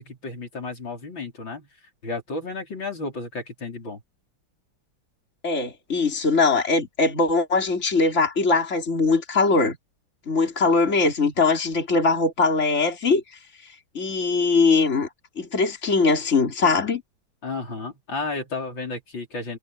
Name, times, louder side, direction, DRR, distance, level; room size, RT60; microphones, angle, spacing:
voice 1, 0.0-1.7 2.0-4.0 17.4-19.6, left 3 dB, 70° left, 5.4 m, -32 dB
voice 2, 5.4-9.8 10.3-13.2 13.9-15.1 15.4-17.0, left 4 dB, 35° left, 3.8 m, -21 dB
omnidirectional pair, 2.2 m